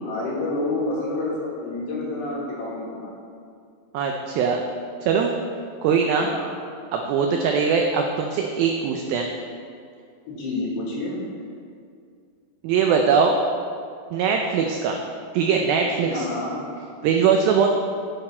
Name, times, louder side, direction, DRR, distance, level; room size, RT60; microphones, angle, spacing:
voice 1, 0.0-1.3 1.6-3.1 6.2-6.5 10.3-11.2 16.1-16.6, left 2 dB, 75° left, -4 dB, 4.0 m, -28 dB
voice 2, 3.9-4.6 5.0-5.3 5.8-6.3 6.9-9.3 12.6-13.3 14.1-15.0 15.3-16.3 17.0-17.7, right 6 dB, 90° right, 2 dB, 2.1 m, -21 dB
10.5 x 8.8 x 4.4 m, 2.3 s
omnidirectional pair, 5.0 m